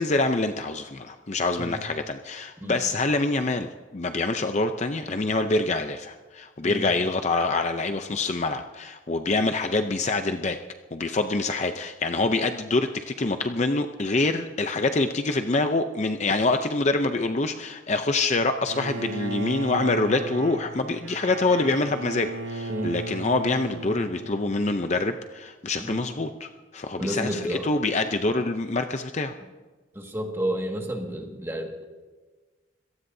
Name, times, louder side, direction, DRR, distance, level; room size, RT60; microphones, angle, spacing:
voice 1, 0.0-10.6 10.9-29.4, left 3 dB, 35° left, 7 dB, 0.6 m, -26 dB
Bowed string instrument, 18.7-24.8, right 3 dB, 80° right, 0.8 m, -36 dB
voice 2, 27.0-27.7 29.9-31.8, right 1 dB, 10° right, 1 dB, 1.8 m, -31 dB
26.0 x 18.0 x 2.7 m, 1.3 s
head